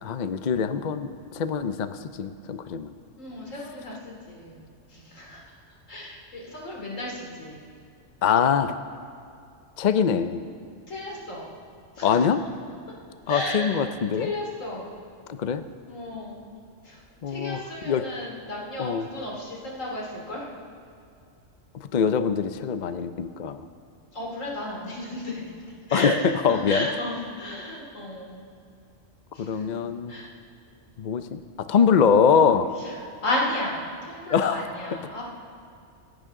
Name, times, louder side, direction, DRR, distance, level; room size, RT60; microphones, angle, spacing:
voice 1, 0.0-2.9 8.2-8.8 9.8-10.4 12.0-12.4 13.3-14.3 15.3-15.6 17.2-17.6 17.8-18.0 18.8-19.1 21.9-23.7 25.9-26.1 26.4-26.9 29.4-30.1 31.0-32.7 34.3-34.6, left 7 dB, 50° left, 10 dB, 0.6 m, -23 dB
voice 2, 3.2-4.6 4.9-5.4 5.9-7.6 10.9-11.5 11.9-12.3 13.3-13.8 14.2-14.9 15.9-16.4 16.8-20.5 24.1-28.5 29.3-29.7 30.1-30.3 32.8-35.2, left 1 dB, 85° left, -3 dB, 3.3 m, -33 dB
26.5 x 10.5 x 3.7 m, 2.4 s
omnidirectional pair, 1.3 m